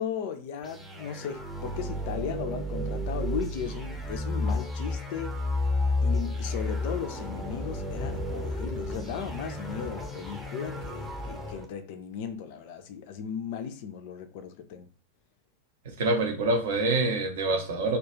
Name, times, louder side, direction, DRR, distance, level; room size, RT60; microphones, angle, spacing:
voice 1, 0.0-5.4 6.0-14.9, left 8 dB, 50° left, 0.3 m, -36 dB
sound 1, 0.6-11.7, left 1 dB, 5° right, 0.7 m, -32 dB
voice 2, 15.9-18.0, right 2 dB, 55° right, 0.6 m, -26 dB
2.3 x 2.1 x 2.9 m
figure-of-eight pair, 90°, 0 cm